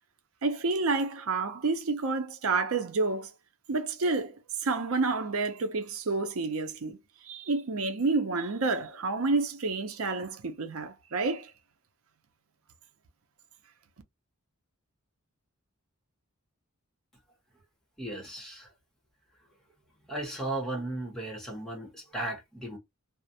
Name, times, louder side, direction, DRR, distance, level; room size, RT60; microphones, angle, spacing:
voice 1, 0.4-3.3 3.7-4.4 4.6-7.0 7.2-11.5, right 3 dB, 75° right, 0.6 m, -29 dB
voice 2, 18.0-18.7 20.0-22.8, right 1 dB, ahead, 1.0 m, -36 dB
2.4 x 2.0 x 2.7 m
head